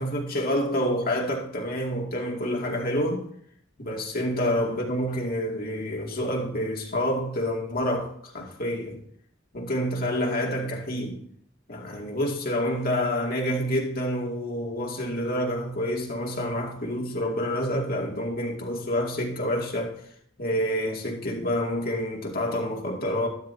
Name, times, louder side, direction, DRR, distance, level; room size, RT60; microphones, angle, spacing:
voice 1, 0.0-3.2 3.8-9.0 9.5-11.2 11.7-20.0 20.4-23.3, equal, 50° left, 2.4 m, -28 dB
12.5 x 12.0 x 2.8 m
head